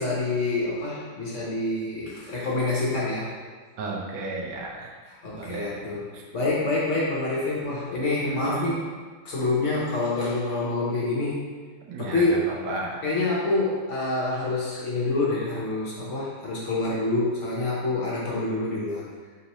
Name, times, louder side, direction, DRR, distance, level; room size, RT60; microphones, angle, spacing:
voice 1, 0.0-3.3 5.1-6.1 6.3-8.9 9.2-11.4 12.0-12.6 13.0-19.0, left 2 dB, 55° left, -6 dB, 0.8 m, -27 dB
voice 2, 3.8-4.9 5.4-5.8 8.2-8.7 11.9-12.2 12.7-13.0, right 3 dB, 75° right, -1 dB, 1.3 m, -33 dB
4.1 x 3.6 x 2.9 m, 1.5 s
omnidirectional pair, 2.1 m